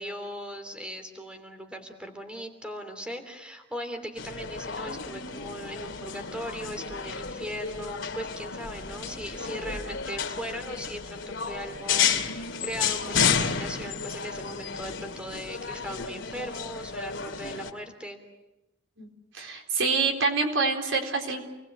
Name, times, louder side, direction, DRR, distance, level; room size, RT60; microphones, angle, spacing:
voice 1, 0.0-18.2, equal, 5° right, 6 dB, 3.1 m, -39 dB
sound 1, 4.2-17.7, left 6 dB, 75° left, 2.5 m, -31 dB
voice 2, 19.3-21.4, right 4 dB, 85° right, 3 dB, 4.0 m, -26 dB
28.5 x 20.5 x 7.9 m, 0.98 s
head